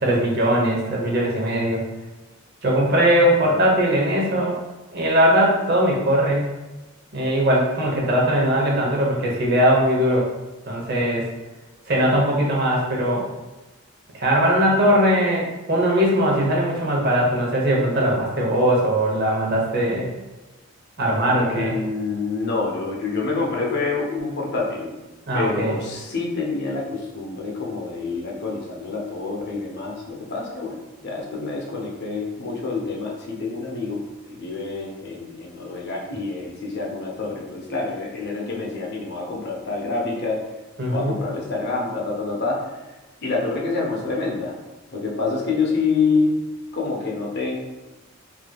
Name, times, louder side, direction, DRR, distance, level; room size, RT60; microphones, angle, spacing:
voice 1, 0.0-1.8 2.6-4.6 4.9-6.5 7.1-10.3 10.7-11.3 11.9-13.3 14.1-20.1 21.0-21.8 25.3-25.8 40.8-41.1, equal, 50° right, -2 dB, 0.7 m, -20 dB
voice 2, 21.2-24.9 25.3-30.8 31.0-40.4 40.9-42.6 43.2-44.5 44.9-46.3 46.7-47.6, left 4 dB, 55° left, -2 dB, 0.6 m, -27 dB
3.4 x 2.7 x 2.2 m, 1.1 s
head